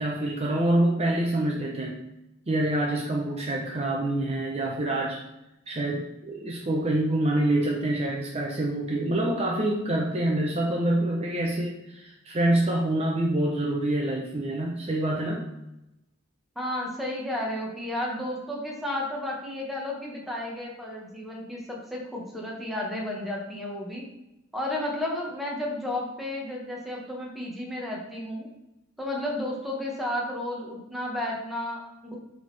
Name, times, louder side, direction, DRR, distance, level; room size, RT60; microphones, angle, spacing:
voice 1, 0.0-2.0 2.5-5.2 5.7-15.5, right 1 dB, 30° right, -1 dB, 0.6 m, -26 dB
voice 2, 16.5-24.0 24.5-28.5 29.0-32.2, left 1 dB, ahead, -3 dB, 1.2 m, -32 dB
7.9 x 3.6 x 3.3 m, 0.90 s
head